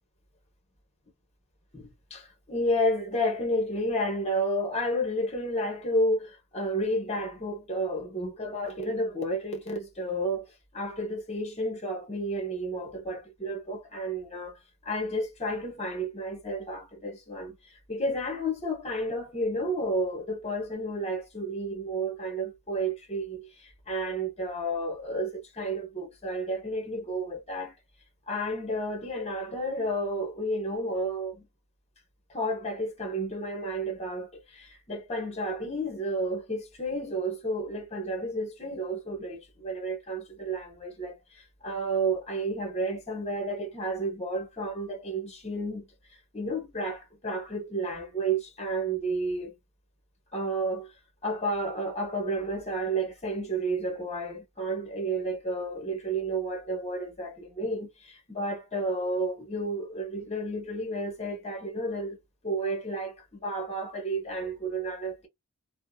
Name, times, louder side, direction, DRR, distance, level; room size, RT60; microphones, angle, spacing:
voice 1, 1.7-10.5 10.7-14.6 14.8-17.6 17.9-27.8 28.3-31.5 32.3-45.9 46.3-49.5 50.3-50.9 51.2-62.2 62.4-65.3, right 1 dB, 30° left, 0.9 m, -31 dB
2.7 x 2.0 x 2.3 m
head